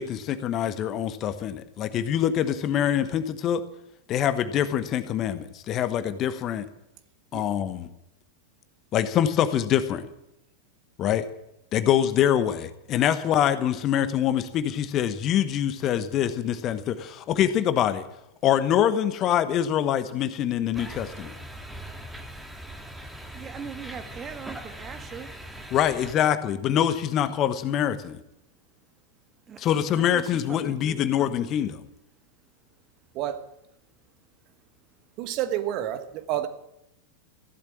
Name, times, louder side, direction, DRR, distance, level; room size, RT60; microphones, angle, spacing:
voice 1, 0.0-3.6 4.1-6.7 7.3-7.9 8.9-10.1 11.0-11.3 11.7-18.1 18.4-21.3 25.7-28.2 29.6-31.8, left 10 dB, 35° left, 12 dB, 1.1 m, -24 dB
sound 1, 20.7-26.1, right 1 dB, 5° right, 1.9 m, -41 dB
voice 2, 23.3-25.5 29.5-31.1, right 7 dB, 25° right, 9 dB, 1.6 m, -41 dB
voice 3, 35.2-36.5, right 11 dB, 40° right, 10 dB, 1.4 m, -29 dB
15.5 x 12.0 x 7.6 m, 0.84 s
figure-of-eight pair, 90°, 0 cm